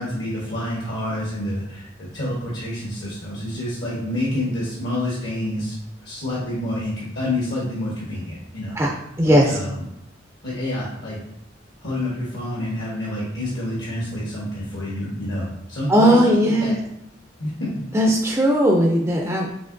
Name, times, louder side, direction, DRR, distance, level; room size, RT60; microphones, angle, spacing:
voice 1, 0.0-5.7 6.0-8.8 9.2-9.8 10.4-11.2 11.8-16.8 17.4-17.7, left 1 dB, 65° left, -6 dB, 1.1 m, -28 dB
voice 2, 9.2-9.6 15.9-16.8 17.9-19.5, equal, 10° right, -1 dB, 0.3 m, -17 dB
5.6 x 2.9 x 2.6 m, 0.79 s
head